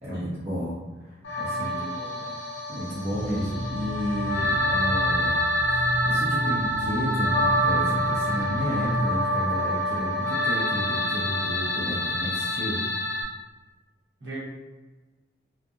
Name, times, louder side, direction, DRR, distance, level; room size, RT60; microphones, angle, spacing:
voice 1, 0.0-0.8 1.1-1.8 2.7-5.4 6.0-12.9, equal, 35° right, -9 dB, 0.6 m, -32 dB
sound 1, 1.2-13.2, equal, 80° left, 0.5 m, -27 dB
voice 2, 1.3-2.3 14.2-14.4, right 1 dB, 65° right, -7 dB, 1.0 m, -39 dB
sound 2, 3.1-9.0, equal, 30° left, 0.7 m, -33 dB
2.6 x 2.0 x 2.3 m, 1.2 s
head